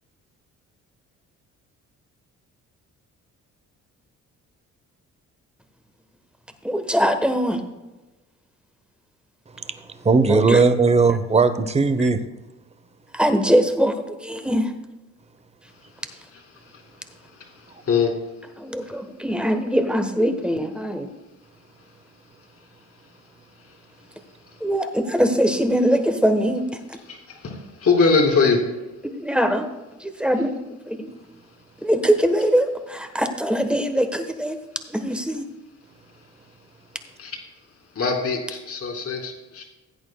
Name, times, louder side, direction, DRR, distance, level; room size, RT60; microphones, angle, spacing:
voice 1, 6.6-7.6 10.3-10.6 12.0-12.1 13.1-14.7 18.6-21.1 24.6-27.0 29.0-29.7 30.0-31.2 31.8-34.6 34.9-35.5, equal, 5° right, 7 dB, 1.1 m, -22 dB
voice 2, 10.0-12.2, right 4 dB, 20° right, 11 dB, 0.8 m, -17 dB
voice 3, 27.8-28.6 37.2-37.4 38.0-39.6, left 4 dB, 50° left, 2 dB, 2.5 m, -21 dB
16.0 x 8.8 x 2.3 m, 1.1 s
cardioid pair, 90°, 30 cm